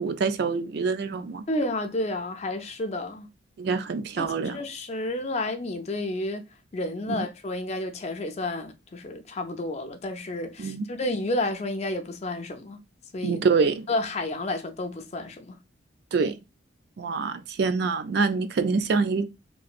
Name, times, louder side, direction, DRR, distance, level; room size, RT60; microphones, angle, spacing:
voice 1, 0.0-1.4 3.6-4.6 7.2-7.3 10.6-10.9 13.2-13.9 16.1-16.3 17.0-19.3, right 4 dB, 55° right, 0.3 m, -25 dB
voice 2, 1.5-3.3 4.2-6.4 6.7-12.8 13.1-13.4 13.9-15.5, left 2 dB, 35° left, 0.4 m, -31 dB
2.9 x 2.5 x 2.3 m
head